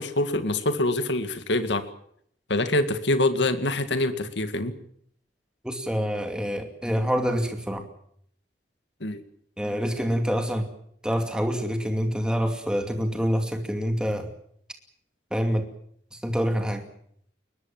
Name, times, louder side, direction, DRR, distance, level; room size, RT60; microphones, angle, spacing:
voice 1, 0.0-1.9 2.5-4.8 9.0-9.2, left 2 dB, 80° left, 9 dB, 2.1 m, -25 dB
voice 2, 5.6-7.9 9.6-10.7 11.0-14.3 15.3-15.7 16.1-16.8, equal, 5° right, 5 dB, 2.5 m, -26 dB
22.0 x 21.5 x 7.4 m, 0.66 s
head